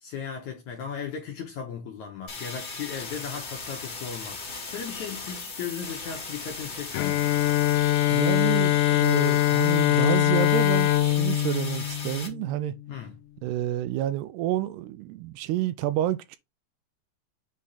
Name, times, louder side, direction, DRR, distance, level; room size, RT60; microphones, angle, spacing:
voice 1, 0.0-7.3 12.9-13.2, left 7 dB, 60° left, 2.1 m, -37 dB
sound 1, 2.3-12.3, left 4 dB, 35° left, 1.7 m, -37 dB
Bowed string instrument, 6.9-12.8, left 13 dB, 85° left, 2.7 m, -23 dB
voice 2, 8.1-12.7 13.4-16.4, right 14 dB, 85° right, 2.6 m, -29 dB
7.6 x 3.6 x 4.1 m
omnidirectional pair, 4.8 m